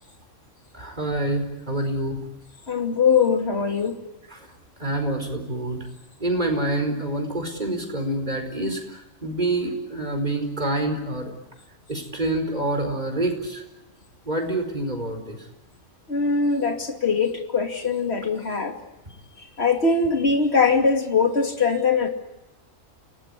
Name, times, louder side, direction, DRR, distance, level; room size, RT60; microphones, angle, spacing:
voice 1, 0.7-2.2 4.3-4.4 4.8-5.8 6.2-11.3 11.9-13.6 14.3-15.4, right 1 dB, 35° right, 5 dB, 4.9 m, -27 dB
voice 2, 2.7-4.0 16.1-18.7 19.6-22.1, left 5 dB, 50° left, 5 dB, 2.8 m, -21 dB
29.0 x 18.5 x 9.8 m, 0.98 s
omnidirectional pair, 1.4 m